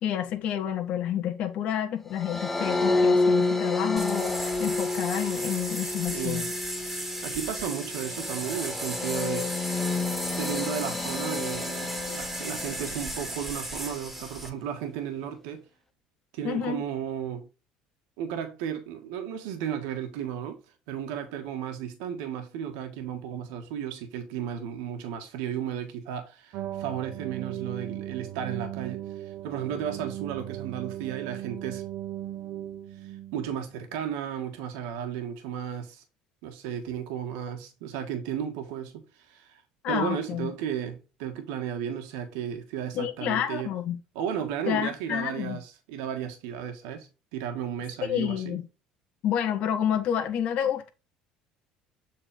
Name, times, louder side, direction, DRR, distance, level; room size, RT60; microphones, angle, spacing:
voice 1, 0.0-6.5 16.4-16.8 39.8-40.5 42.9-44.0 44.7-45.6 48.0-48.7 49.2-50.9, left 9 dB, 60° left, 1.5 m, -29 dB
sound 1, 2.1-13.5, left 3 dB, 10° left, 0.8 m, -29 dB
sound 2, 4.0-14.5, right 1 dB, 10° right, 2.4 m, -36 dB
voice 2, 6.1-6.5 7.2-9.5 10.4-15.6 16.3-17.5 18.2-20.6 20.9-31.8 33.0-36.0 36.4-39.6 39.9-43.7 44.1-48.6, right 9 dB, 85° right, 1.5 m, -34 dB
sound 3, 26.5-33.6, right 12 dB, 70° right, 1.1 m, -37 dB
7.6 x 4.1 x 3.6 m
supercardioid pair, 110°, 2 cm